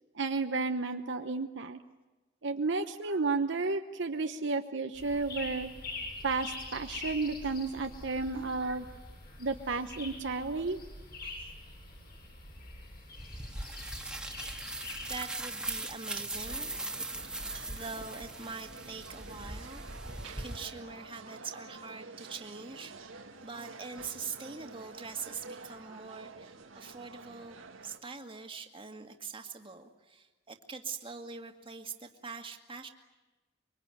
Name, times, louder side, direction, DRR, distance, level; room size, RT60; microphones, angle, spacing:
voice 1, 0.1-1.8 2.4-5.7 6.2-8.8 9.4-10.8, right 3 dB, 65° right, 6 dB, 1.0 m, -32 dB
sound 1, 4.9-15.3, left 2 dB, 55° left, 7.7 m, -44 dB
voice 2, 11.2-11.5 15.1-19.8 20.4-32.9, right 5 dB, 25° right, 5 dB, 2.0 m, -44 dB
sound 2, 13.2-20.6, right 2 dB, 5° right, 1.8 m, -40 dB
sound 3, 16.5-28.0, right 3 dB, 90° right, 1.9 m, -49 dB
25.0 x 23.5 x 9.2 m, 1.1 s
head